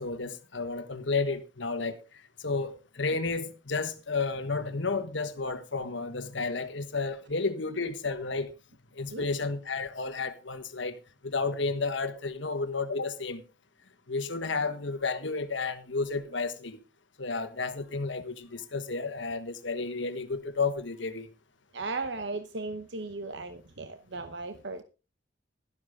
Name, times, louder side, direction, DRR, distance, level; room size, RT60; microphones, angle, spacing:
voice 1, 0.0-8.5 8.9-13.4 14.1-16.8 17.2-21.3, left 4 dB, 65° left, 1.4 m, -32 dB
voice 2, 21.7-24.8, right 3 dB, 60° right, 1.0 m, -36 dB
12.5 x 12.0 x 3.6 m
head